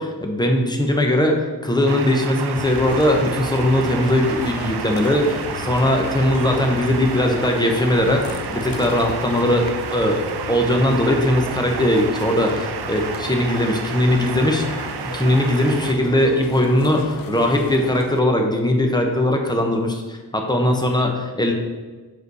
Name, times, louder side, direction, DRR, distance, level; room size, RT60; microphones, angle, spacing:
voice 1, 0.0-1.4 1.6-8.2 8.5-14.7 15.0-21.5, left 1 dB, 10° left, 2 dB, 0.8 m, -20 dB
sound 1, 1.9-15.9, right 8 dB, 90° right, 0.5 m, -31 dB
sound 2, 2.5-18.2, left 6 dB, 60° left, 0.5 m, -34 dB
6.4 x 4.8 x 4.1 m, 1.3 s
wide cardioid pair, 130°, 38 cm